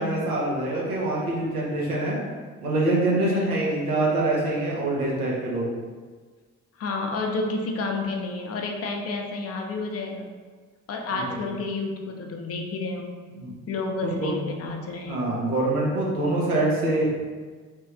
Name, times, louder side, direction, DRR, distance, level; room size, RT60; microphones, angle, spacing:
voice 1, 0.0-2.2 2.6-5.7 11.1-11.4 13.3-13.6 14.0-14.4 15.1-17.1, right 2 dB, 85° right, -4 dB, 0.7 m, -25 dB
voice 2, 3.2-3.7 6.8-10.3 10.9-13.2 13.7-15.3, left 3 dB, 35° left, 2 dB, 0.6 m, -30 dB
3.5 x 3.1 x 2.8 m, 1.5 s
figure-of-eight pair, 45°, 43 cm